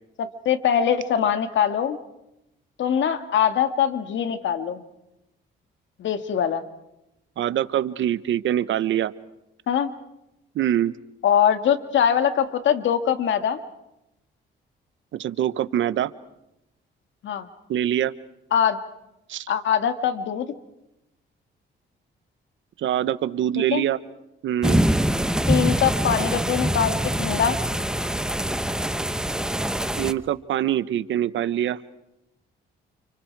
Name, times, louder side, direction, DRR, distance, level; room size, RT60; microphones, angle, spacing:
voice 1, 0.2-2.0 2.8-4.8 6.0-6.6 9.7-9.9 11.2-13.6 17.2-17.5 18.5-18.8 19.5-20.5 23.7-23.8 25.5-27.6, left 8 dB, 70° left, 8 dB, 2.2 m, -22 dB
voice 2, 7.4-9.1 10.5-10.9 15.1-16.1 17.7-18.1 19.3-19.5 22.8-24.0 24.4-24.8 30.0-31.8, right 11 dB, 75° right, 15 dB, 1.1 m, -24 dB
sound 1, 24.6-30.1, right 1 dB, 5° right, 1.0 m, -24 dB
30.0 x 29.5 x 4.8 m, 0.87 s
cardioid pair, 90°, 20 cm